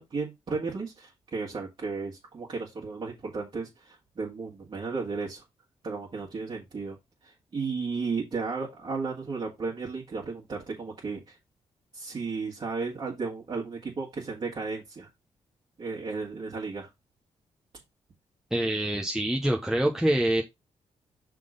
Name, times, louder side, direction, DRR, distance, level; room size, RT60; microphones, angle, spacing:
voice 1, 0.0-5.4 5.8-7.0 7.2-11.4 11.9-15.1 15.8-16.9, right 4 dB, 45° right, 1.9 m, -34 dB
voice 2, 18.5-20.4, right 1 dB, 5° right, 0.8 m, -25 dB
6.0 x 3.8 x 5.1 m
cardioid pair, 100°, 11 cm